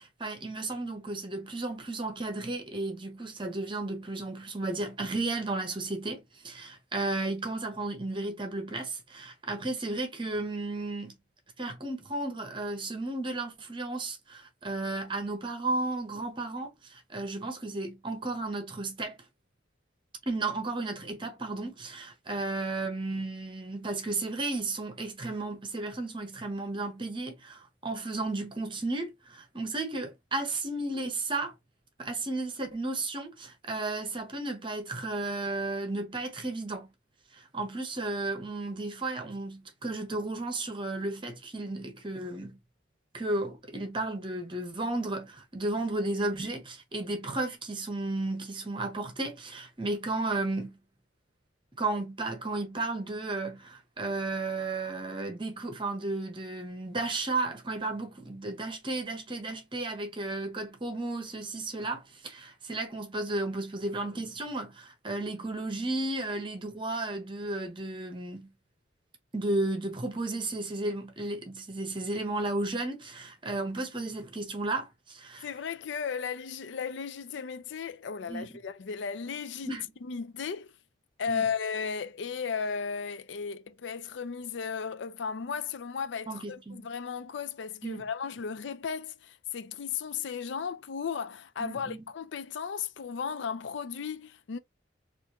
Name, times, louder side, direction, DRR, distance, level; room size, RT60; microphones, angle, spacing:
voice 1, 0.0-11.1 11.6-19.2 20.3-31.5 32.0-36.9 37.3-42.6 43.1-50.8 51.8-68.5 69.3-75.5 78.3-78.5 79.6-79.9 81.3-81.5 86.3-86.9 87.8-88.1 91.6-92.1, right 2 dB, 25° right, 0.9 m, -34 dB
voice 2, 75.4-79.8 80.0-80.7 81.2-94.6, left 6 dB, 70° left, 0.4 m, -35 dB
4.1 x 2.6 x 2.9 m
head